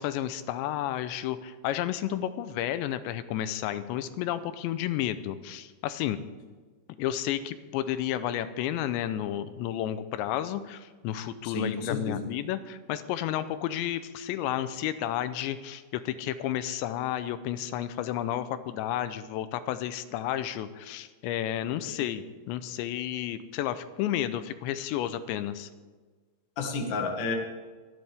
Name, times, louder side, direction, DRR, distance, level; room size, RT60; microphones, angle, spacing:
voice 1, 0.0-6.2 7.0-25.7, left 11 dB, 85° left, 12 dB, 2.9 m, -32 dB
voice 2, 11.4-12.3 21.9-22.0 26.6-27.3, left 3 dB, 60° left, 1 dB, 1.2 m, -31 dB
25.0 x 11.0 x 3.5 m, 1.4 s
omnidirectional pair, 5.2 m